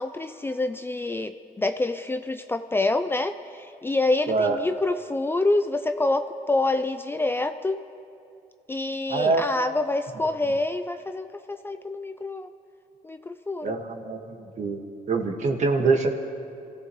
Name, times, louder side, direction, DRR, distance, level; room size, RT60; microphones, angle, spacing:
voice 1, 0.0-7.8 8.7-12.5 13.0-13.8, left 2 dB, 15° left, 9 dB, 0.5 m, -27 dB
voice 2, 4.3-4.6 9.1-9.4 13.6-14.8 15.1-16.1, right 4 dB, 50° right, 3 dB, 1.8 m, -24 dB
26.0 x 15.5 x 3.2 m, 2.6 s
cardioid pair, 90°, 16 cm